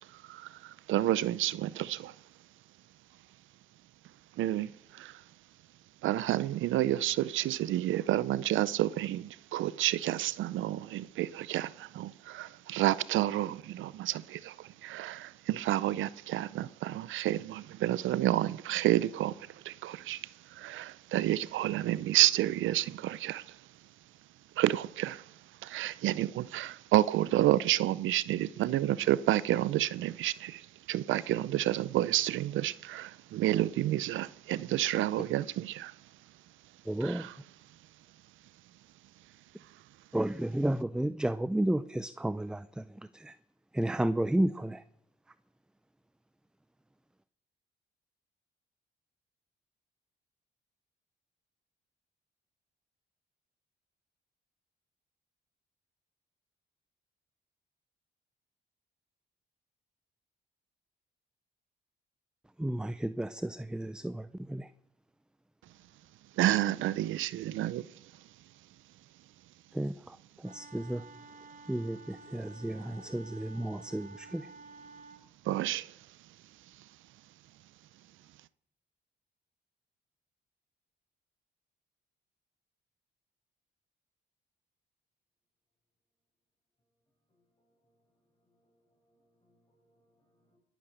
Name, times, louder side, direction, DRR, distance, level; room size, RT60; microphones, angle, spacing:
voice 1, 0.1-2.1 4.4-5.2 6.0-23.6 24.6-25.3 25.6-35.9 37.0-37.3 66.4-67.9 75.5-76.0, right 14 dB, 80° right, 0.5 m, -30 dB
voice 2, 36.9-37.3 40.1-42.8 43.1-43.3 43.7-44.8 62.6-64.7 69.7-71.0 71.7-74.5, right 1 dB, 5° right, 0.5 m, -32 dB
Wind instrument woodwind instrument, 70.4-75.3, right 3 dB, 40° right, 1.2 m, -51 dB
voice 3, 87.3-88.0 88.4-90.6, equal, 20° left, 7.6 m, -74 dB
20.5 x 9.2 x 6.7 m
cardioid pair, 90°, 20 cm